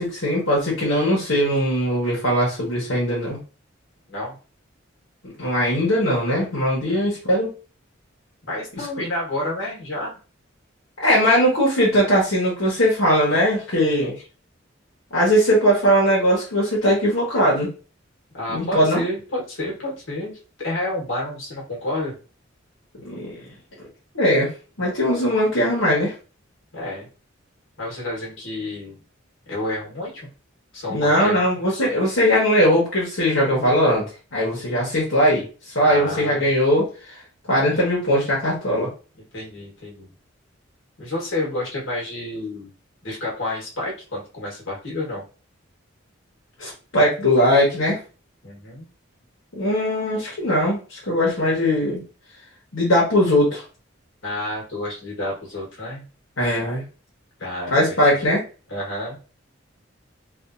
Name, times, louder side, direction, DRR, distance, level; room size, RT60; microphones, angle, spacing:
voice 1, 0.0-3.4 5.2-7.5 11.0-14.1 15.1-17.7 18.5-19.0 23.0-23.4 24.1-24.5 24.8-26.1 30.9-34.0 34.3-35.4 35.7-36.9 37.5-38.9 46.6-48.0 49.5-52.0 52.7-53.6 56.4-56.8 57.7-58.4, equal, 85° left, -5 dB, 1.2 m, -20 dB
voice 2, 8.4-10.2 14.0-14.1 18.3-22.2 26.7-27.1 27.8-29.0 29.5-30.3 30.7-31.4 35.8-36.5 39.3-40.1 41.0-42.7 43.0-45.2 48.4-48.9 54.2-56.0 57.4-58.2 58.7-59.2, left 1 dB, 70° left, -3 dB, 1.4 m, -30 dB
3.4 x 2.5 x 2.6 m, 0.35 s
head